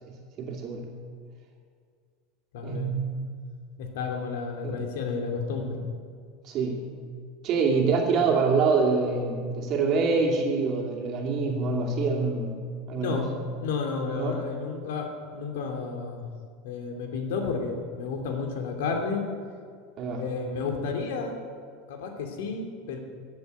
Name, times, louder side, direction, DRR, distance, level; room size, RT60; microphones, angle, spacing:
voice 1, 0.0-0.8 2.6-3.2 4.6-4.8 6.4-6.8 7.4-12.6 12.9-13.2 14.2-14.4 20.0-20.2, right 4 dB, 35° right, 0 dB, 2.5 m, -26 dB
voice 2, 2.5-2.9 3.8-5.8 13.0-13.3 13.6-16.3 16.6-19.3 20.2-21.4 21.9-23.0, left 5 dB, 80° left, 3 dB, 2.6 m, -31 dB
15.0 x 8.2 x 9.6 m, 2.1 s
supercardioid pair, 175°, 0 cm